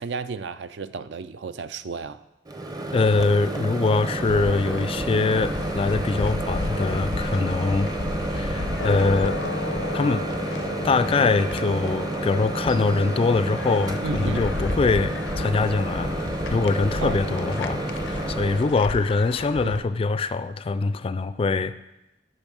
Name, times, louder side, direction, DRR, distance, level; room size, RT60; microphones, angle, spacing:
voice 1, 0.0-2.2 14.0-14.5 17.0-17.2 19.6-19.9, right 4 dB, 70° right, 13 dB, 0.4 m, -32 dB
Microwave oven, 2.5-18.7, right 2 dB, 20° right, 0.6 m, -30 dB
voice 2, 2.9-7.9 8.3-9.4 9.9-10.2 10.8-21.7, left 3 dB, 30° left, 13 dB, 0.3 m, -23 dB
sound 1, 4.2-19.8, left 3 dB, 90° left, 0.6 m, -33 dB
sound 2, 8.6-9.2 10.0-10.6 11.4-12.0 12.7-13.3, right 6 dB, 55° right, 0.8 m, -45 dB
8.9 x 5.4 x 6.2 m, 0.93 s
head